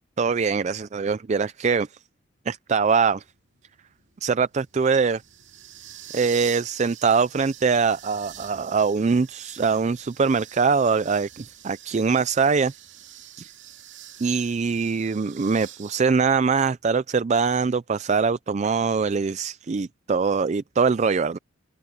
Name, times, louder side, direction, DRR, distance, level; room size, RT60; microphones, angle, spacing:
voice 1, 0.2-1.9 2.5-3.2 4.2-5.2 6.1-12.7 13.4-13.5 14.2-21.4, right 5 dB, 35° right, 0.4 m, -23 dB
sound 1, 3.1-15.9, right 11 dB, 65° right, 2.6 m, -45 dB
open air
head